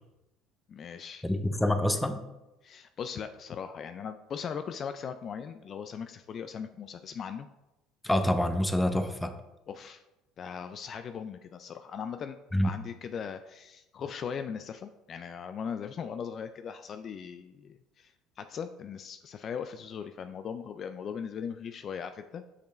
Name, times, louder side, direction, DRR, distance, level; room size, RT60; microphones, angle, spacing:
voice 1, 0.7-1.2 2.6-7.5 9.7-10.0 10.4-12.4 12.6-22.4, left 7 dB, 45° left, 9 dB, 0.3 m, -39 dB
voice 2, 1.2-2.2 8.0-9.4 12.5-12.7, left 1 dB, 10° left, 9 dB, 0.6 m, -27 dB
6.8 x 5.0 x 3.1 m, 0.96 s
supercardioid pair, 90°, 0 cm